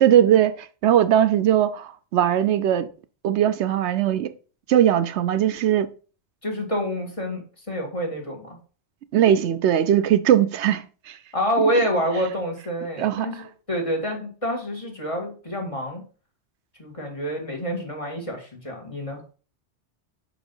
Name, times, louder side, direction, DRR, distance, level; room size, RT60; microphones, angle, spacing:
voice 1, 0.0-2.9 3.2-4.3 4.7-5.9 9.1-11.2 13.0-13.3, right 10 dB, 80° right, 0.9 m, -20 dB
voice 2, 6.4-8.6 11.3-16.0 16.8-19.2, equal, 30° left, 2.0 m, -27 dB
5.8 x 5.0 x 5.4 m
omnidirectional pair, 1.2 m